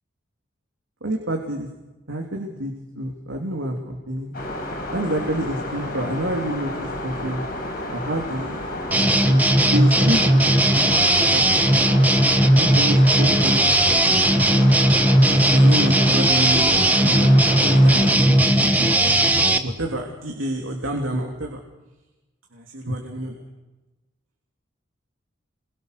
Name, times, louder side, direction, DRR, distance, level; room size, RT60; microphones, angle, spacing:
voice 1, 1.0-1.7 2.1-4.3 4.9-7.4 7.9-8.6 9.2-11.8 12.5-14.5 15.3-17.3 17.6-21.6 22.5-23.4, right 1 dB, 90° right, 1 dB, 3.1 m, -28 dB
sound 1, 4.3-18.1, left 1 dB, 50° left, 5.7 m, -31 dB
sound 2, 8.9-19.6, right 1 dB, 10° right, 1.2 m, -17 dB
27.5 x 23.0 x 6.7 m, 1.1 s
head